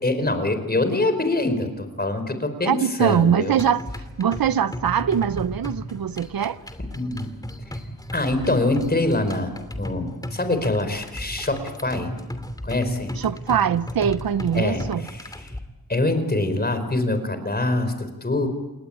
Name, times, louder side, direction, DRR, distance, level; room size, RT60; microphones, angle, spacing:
voice 1, 0.0-3.5 6.9-7.3 8.1-12.1 12.6-13.1 14.5-15.5 15.9-18.5, left 2 dB, 25° left, 4.8 m, -24 dB
voice 2, 2.7-3.8 4.2-6.6 13.2-15.0, right 8 dB, 70° right, 0.8 m, -22 dB
sound 1, 3.6-15.6, left 1 dB, 10° left, 2.7 m, -35 dB
29.0 x 19.5 x 8.9 m
wide cardioid pair, 95°, 37 cm